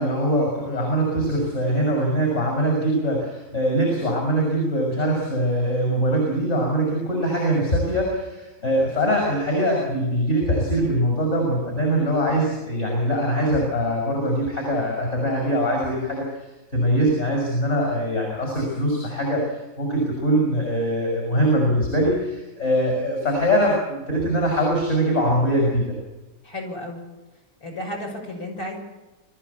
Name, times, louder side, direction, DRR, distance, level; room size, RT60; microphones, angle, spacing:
voice 1, 0.0-25.9, equal, 40° left, 0 dB, 6.7 m, -22 dB
voice 2, 26.4-27.0 27.6-28.7, left 1 dB, 60° left, 0 dB, 6.7 m, -33 dB
25.0 x 14.0 x 8.6 m, 1.1 s
omnidirectional pair, 1.8 m